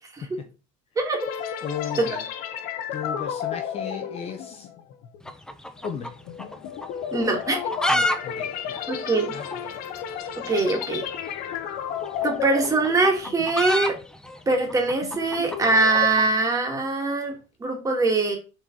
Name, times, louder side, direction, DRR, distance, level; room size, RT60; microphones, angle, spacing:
voice 1, 0.2-0.5 1.6-2.2 2.9-4.7 5.8-6.1 7.9-8.9 9.3-9.8, left 7 dB, 40° left, 1.2 m, -35 dB
voice 2, 1.0-1.3 7.1-7.6 8.9-9.3 10.4-11.1 12.2-14.0 14.5-18.4, right 3 dB, 20° right, 2.4 m, -23 dB
sound 1, 1.2-13.7 14.0-14.3 14.8-16.1, left 8 dB, 60° left, 1.0 m, -33 dB
sound 2, 5.2-6.6 6.8-6.9 7.4-8.2 8.4-8.5 8.8-8.9 9.4-9.6 10.7-10.9 12.0-16.3, left 1 dB, 5° left, 0.7 m, -27 dB
6.5 x 4.3 x 4.8 m
cardioid pair, 125°, 16 cm